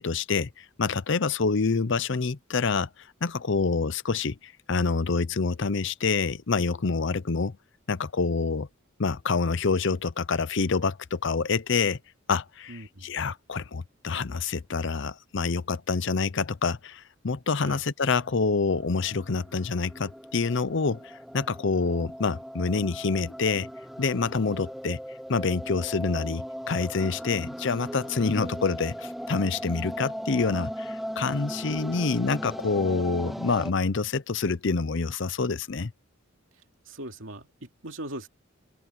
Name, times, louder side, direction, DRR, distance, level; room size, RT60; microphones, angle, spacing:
voice 1, 0.0-2.9 3.2-7.6 7.9-8.7 9.0-12.0 12.3-23.7 24.0-25.0 25.3-35.9, left 4 dB, 60° left, 0.7 m, -27 dB
voice 2, 12.7-13.1 17.6-17.8 36.9-38.3, right 1 dB, 70° right, 2.8 m, -40 dB
sound 1, 18.2-33.7, equal, ahead, 0.7 m, -38 dB
open air
head